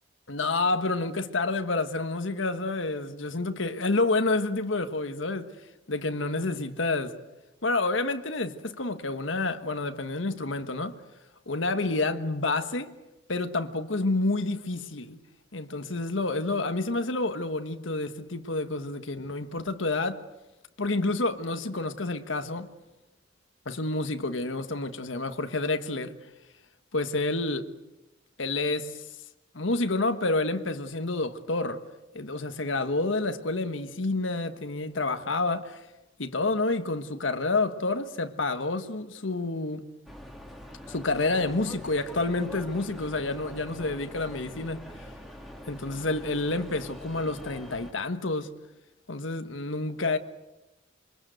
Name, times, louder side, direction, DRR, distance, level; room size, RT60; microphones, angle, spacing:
voice 1, 0.3-5.5 5.9-7.2 7.6-11.0 11.5-12.9 13.3-15.2 15.5-20.2 20.8-22.7 23.6-26.1 26.9-27.7 28.4-29.0 29.5-31.8 32.1-35.8 36.2-39.9 40.9-44.8 45.7-48.5 49.1-50.2, left 2 dB, 85° left, 1.5 m, -29 dB
sound 1, 40.1-47.9, equal, ahead, 2.9 m, -44 dB
27.0 x 23.5 x 8.0 m
head